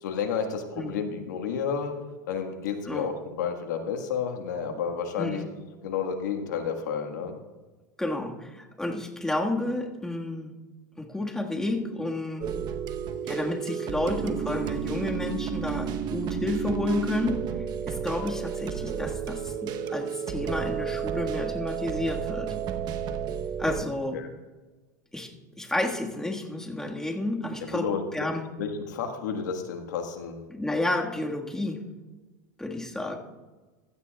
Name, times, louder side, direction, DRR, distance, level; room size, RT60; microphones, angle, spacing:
voice 1, 0.0-1.9 2.3-5.4 5.8-7.4 24.1-24.3 27.7-28.0 28.6-30.4, left 6 dB, 80° left, 6 dB, 1.5 m, -31 dB
voice 2, 8.0-10.5 11.0-12.5 13.3-17.4 17.9-22.5 23.6-24.2 25.1-25.3 25.6-28.5 30.5-31.8 32.6-33.2, left 2 dB, 5° left, 1 dB, 1.6 m, -31 dB
sound 1, 12.4-23.8, right 8 dB, 45° right, 0.9 m, -32 dB
15.5 x 12.5 x 2.3 m, 1.3 s
hypercardioid pair, 100°, 10 cm